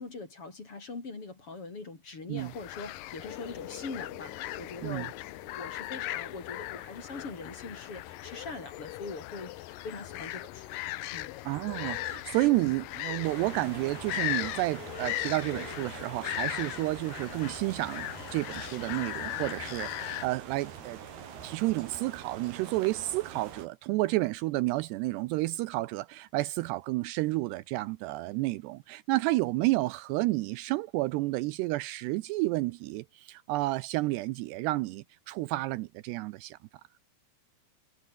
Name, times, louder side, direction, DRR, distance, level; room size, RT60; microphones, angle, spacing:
voice 1, 0.0-5.1 5.4-10.8 11.1-11.3, left 3 dB, 30° left, 4.9 m, -42 dB
sound 1, 2.4-20.3, left 16 dB, 90° left, 2.0 m, -38 dB
sound 2, 3.2-9.3, left 12 dB, 75° left, 1.8 m, -48 dB
voice 2, 11.5-21.0 21.4-36.6, right 19 dB, 80° right, 2.6 m, -31 dB
sound 3, 13.2-23.7, right 8 dB, 65° right, 5.2 m, -45 dB
omnidirectional pair, 5.1 m